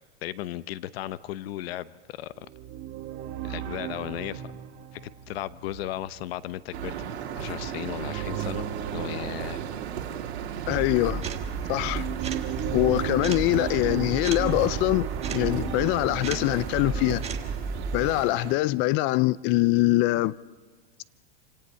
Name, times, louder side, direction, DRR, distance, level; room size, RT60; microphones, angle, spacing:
voice 1, 0.2-2.3 3.4-4.5 4.9-9.6, left 14 dB, 70° left, 0.9 m, -36 dB
sound 1, 2.3-10.8 11.4-17.1, right 11 dB, 40° right, 1.4 m, -37 dB
sound 2, 6.7-18.5, right 9 dB, 85° right, 2.5 m, -36 dB
voice 2, 10.7-11.3 11.7-12.1 12.7-17.2 17.9-20.4, left 18 dB, 35° left, 0.5 m, -24 dB
sound 3, 10.7-18.1, right 4 dB, 20° right, 1.5 m, -34 dB
27.0 x 17.5 x 5.7 m
supercardioid pair, 135°, 32 cm